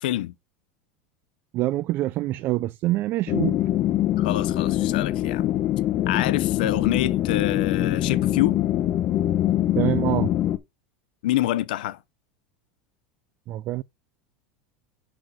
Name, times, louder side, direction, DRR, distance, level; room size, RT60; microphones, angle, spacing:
voice 1, 0.0-0.3 4.2-5.4 6.1-8.6 11.2-12.0, left 14 dB, 80° left, 0.8 m, -26 dB
voice 2, 1.5-3.6 9.8-10.3 13.5-13.8, right 16 dB, 45° right, 0.3 m, -25 dB
sound 1, 3.3-10.6, left 13 dB, 45° left, 0.8 m, -23 dB
6.1 x 4.7 x 6.1 m
supercardioid pair, 125°, 5 cm